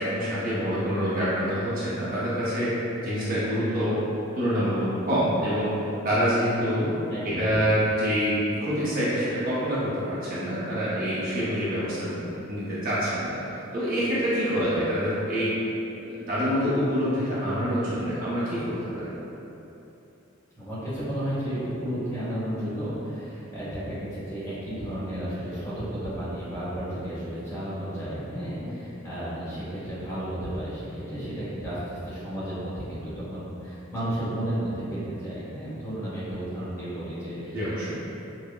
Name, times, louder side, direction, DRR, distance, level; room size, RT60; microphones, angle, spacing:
voice 1, 0.0-2.7 3.0-4.0 4.3-5.7 6.0-6.9 7.2-13.4 13.7-15.5 16.3-19.1 28.6-28.8 37.5-37.9, equal, 45° right, -10 dB, 0.7 m, -26 dB
voice 2, 7.1-7.6 20.5-37.9, right 1 dB, 15° left, -12 dB, 1.2 m, -33 dB
5.4 x 2.1 x 2.2 m, 2.9 s
head